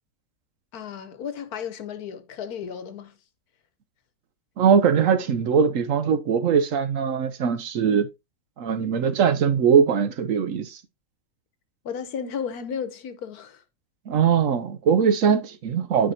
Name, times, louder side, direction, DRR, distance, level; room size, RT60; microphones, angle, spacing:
voice 1, 0.7-3.1 11.8-13.6, left 7 dB, 80° left, 1.5 m, -34 dB
voice 2, 4.6-8.1 8.6-10.8 14.1-16.1, right 7 dB, 65° right, 1.0 m, -21 dB
9.5 x 5.1 x 2.7 m
omnidirectional pair, 1.6 m